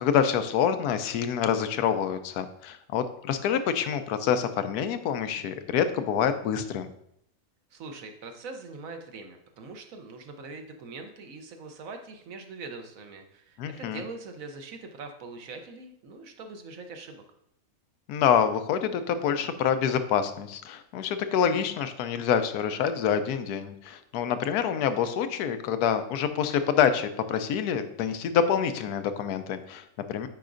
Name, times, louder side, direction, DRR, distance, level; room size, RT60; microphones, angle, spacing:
voice 1, 0.0-6.9 13.6-14.0 18.1-30.3, left 8 dB, 90° left, 10 dB, 1.1 m, -26 dB
voice 2, 7.7-17.2, right 3 dB, 65° right, 5 dB, 1.1 m, -42 dB
9.1 x 4.7 x 2.5 m, 0.74 s
omnidirectional pair, 1.6 m